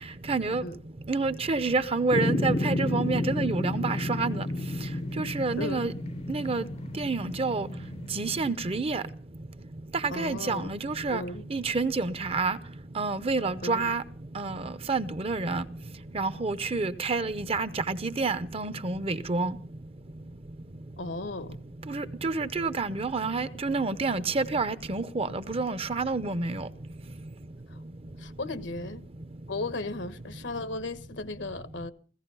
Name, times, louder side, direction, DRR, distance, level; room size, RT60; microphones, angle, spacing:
voice 1, 0.3-0.6 1.1-4.4 5.2-5.9 6.3-6.7 7.0-7.7 8.1-9.0 10.0-11.2 11.5-12.6 13.0-14.0 14.4-15.6 16.1-19.6 21.9-26.7, right 3 dB, 30° right, 0.7 m, -28 dB
sound 1, 2.1-8.6, left 1 dB, 35° left, 0.7 m, -31 dB
voice 2, 10.1-10.7 11.1-11.4 13.6-13.9 21.0-21.6 27.7-27.8 28.2-29.0 29.5-31.9, left 2 dB, 75° left, 1.2 m, -35 dB
16.5 x 16.0 x 5.5 m
head